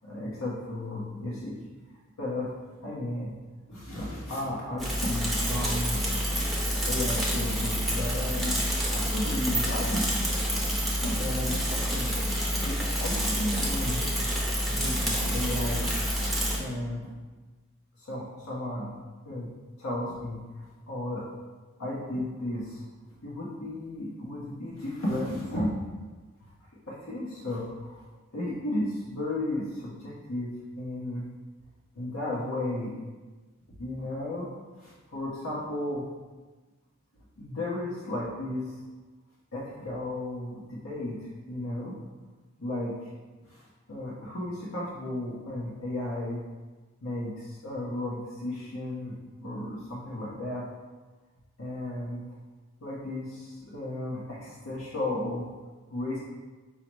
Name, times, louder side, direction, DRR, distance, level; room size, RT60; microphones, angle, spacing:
voice 1, 0.0-1.5 2.2-3.3 3.7-6.0 6.9-10.5 10.9-12.1 12.6-14.0 14.7-15.9 16.6-17.1 18.0-18.9 19.2-19.5 19.8-21.3 21.8-22.8 23.2-25.7 26.4-28.0 28.3-31.3 31.9-32.9 33.8-34.5 34.8-36.1 37.4-38.8 39.5-41.2 41.5-41.9 42.6-43.1 43.4-46.4 47.0-49.2 49.4-50.7 51.6-52.2 52.8-55.5 55.9-56.2, left 1 dB, 75° left, -6 dB, 0.9 m, -34 dB
Bicycle / Mechanisms, 4.8-16.6, equal, ahead, 0.6 m, -28 dB
5.6 x 2.0 x 4.5 m, 1.3 s
head